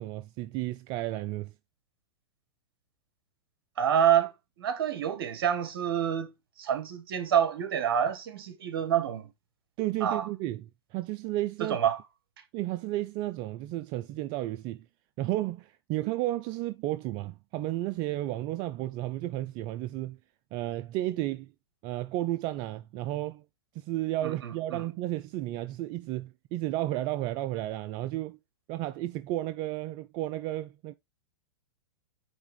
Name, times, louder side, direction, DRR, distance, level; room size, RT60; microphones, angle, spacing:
voice 1, 0.0-1.5 9.8-11.8 12.5-14.8 15.2-20.2 20.5-21.5 21.8-23.4 23.8-28.4 28.7-30.9, right 15 dB, 35° right, 0.4 m, -33 dB
voice 2, 3.8-4.3 4.6-6.3 6.6-9.3 10.0-10.2 11.7-12.0 24.2-24.8, right 9 dB, 60° right, 1.6 m, -27 dB
9.1 x 3.5 x 3.4 m
hypercardioid pair, 105°, 13 cm